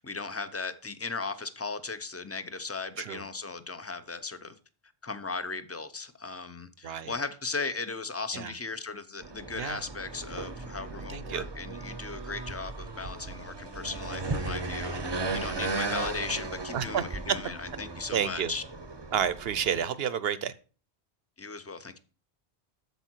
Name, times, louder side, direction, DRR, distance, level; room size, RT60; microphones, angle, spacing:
voice 1, 0.0-4.6 5.0-18.6 21.4-22.0, left 4 dB, 15° left, 0.5 m, -37 dB
voice 2, 6.8-7.1 8.3-8.5 9.6-9.8 11.1-11.5 16.7-17.0 18.1-18.5 19.1-20.5, right 8 dB, 70° right, 0.9 m, -30 dB
sound 1, 9.2-19.8, right 3 dB, 25° right, 0.7 m, -36 dB
8.2 x 7.1 x 4.5 m
omnidirectional pair, 1.1 m